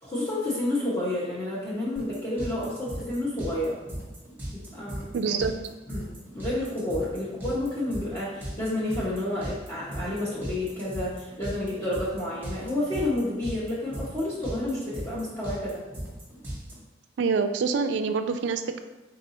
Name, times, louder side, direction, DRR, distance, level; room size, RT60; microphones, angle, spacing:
voice 1, 0.0-3.8 4.5-5.3 5.9-15.8, left 1 dB, 20° left, -10 dB, 0.9 m, -30 dB
sound 1, 1.9-16.7, right 1 dB, 10° right, 1.1 m, -37 dB
voice 2, 5.1-5.5 17.2-18.8, right 5 dB, 70° right, 9 dB, 0.3 m, -26 dB
3.9 x 2.6 x 4.1 m, 1.1 s
head